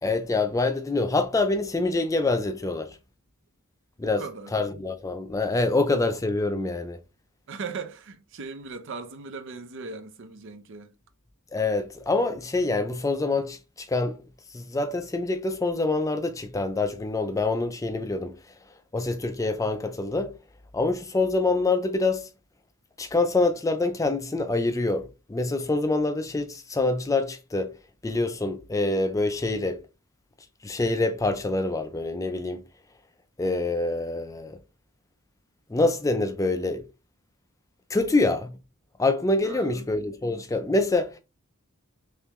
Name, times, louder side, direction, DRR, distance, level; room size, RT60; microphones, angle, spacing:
voice 1, 0.0-3.0 4.0-4.2 4.5-7.0 11.5-14.2 14.5-18.3 18.9-20.3 20.7-22.3 23.0-27.7 28.0-29.8 30.6-32.6 33.4-34.6 35.7-36.8 37.9-38.6 39.0-41.2, left 2 dB, 15° left, 0.4 m, -26 dB
voice 2, 4.0-4.5 7.5-10.9 37.9-38.1 39.4-39.9, right 4 dB, 60° right, 0.6 m, -38 dB
3.6 x 3.3 x 3.0 m
head